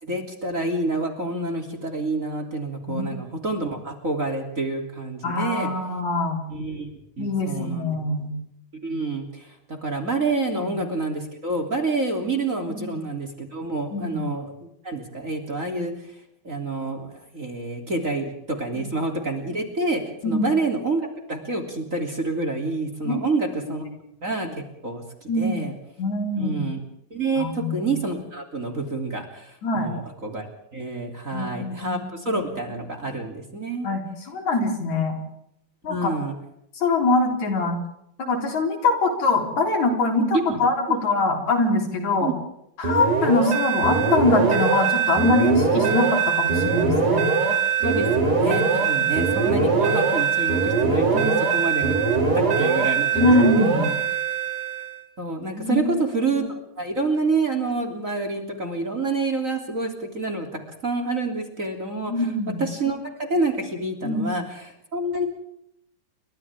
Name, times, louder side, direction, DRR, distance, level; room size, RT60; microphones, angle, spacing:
voice 1, 0.0-5.7 6.5-6.9 7.2-7.9 8.8-14.5 14.8-15.9 16.4-23.8 24.2-25.7 26.4-26.8 27.1-30.5 30.7-33.9 35.9-36.3 40.3-40.6 40.9-41.0 42.2-42.3 47.8-52.0 52.3-53.9 55.2-60.5 60.8-62.3 62.6-65.3, right 3 dB, 25° right, 5 dB, 3.4 m, -28 dB
voice 2, 5.2-6.4 7.2-8.3 10.6-10.7 12.7-13.0 13.9-14.2 18.7-18.9 20.2-20.5 23.0-23.5 25.3-25.6 26.0-26.6 27.4-27.9 29.6-29.9 31.3-32.0 32.3-32.4 33.8-35.2 35.8-36.1 36.8-37.8 38.2-42.3 42.8-47.3 48.6-48.7 51.1-51.4 53.1-53.9 55.5-55.9 62.1-62.6 64.0-64.3, left 2 dB, 65° left, 3 dB, 5.2 m, -23 dB
sound 1, 42.8-55.0, right 5 dB, 85° right, 5.2 m, -22 dB
29.5 x 25.0 x 3.6 m, 0.76 s
omnidirectional pair, 3.4 m